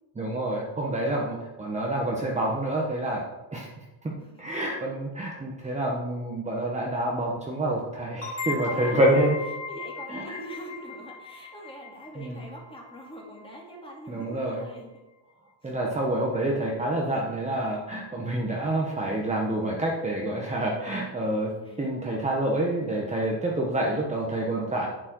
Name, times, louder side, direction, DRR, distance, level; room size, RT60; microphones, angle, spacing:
voice 1, 0.1-3.2 3.5-4.1 4.4-9.4 10.1-10.4 12.1-12.4 14.1-14.7 15.6-21.5 21.8-24.9, right 1 dB, 15° right, -3 dB, 1.3 m, -27 dB
sound 1, 8.2-13.6, left 4 dB, 30° left, 2.8 m, -38 dB
voice 2, 8.6-9.1 9.7-14.9 15.6-15.7 21.6-21.8 24.5-24.9, right 1 dB, 10° left, -1 dB, 2.6 m, -43 dB
10.5 x 8.7 x 4.7 m, 1.1 s
cardioid pair, 160°, 46 cm